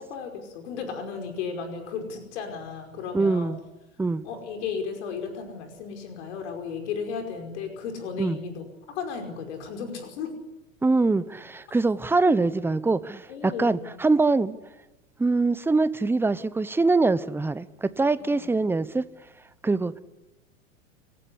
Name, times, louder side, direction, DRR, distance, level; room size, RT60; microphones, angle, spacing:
voice 1, 0.0-3.5 4.2-10.3 12.2-12.4 13.3-13.9 18.2-18.5, left 6 dB, 60° left, 5.3 m, -34 dB
voice 2, 3.1-3.6 4.0-4.2 8.2-8.4 10.8-14.6 15.2-19.0 19.6-20.0, right 3 dB, 5° right, 0.9 m, -23 dB
29.5 x 15.5 x 9.9 m
hypercardioid pair, 100°, 40 cm